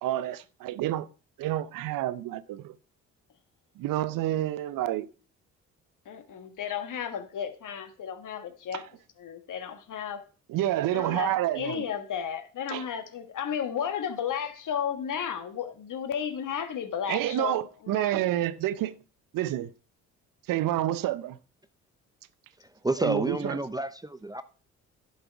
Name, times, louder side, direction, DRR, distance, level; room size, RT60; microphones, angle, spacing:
voice 1, 0.0-1.1 1.4-2.7 3.8-5.1 8.7-8.8 10.5-11.8 12.7-12.9 17.1-18.9 19.3-19.7 20.5-21.4 23.0-23.6, right 13 dB, 60° right, 0.6 m, -29 dB
voice 2, 6.0-8.8 9.2-10.2 10.9-18.2, left 8 dB, 55° left, 1.5 m, -33 dB
voice 3, 22.6-24.4, right 2 dB, 10° right, 0.6 m, -30 dB
11.0 x 5.5 x 4.6 m
hypercardioid pair, 45°, 38 cm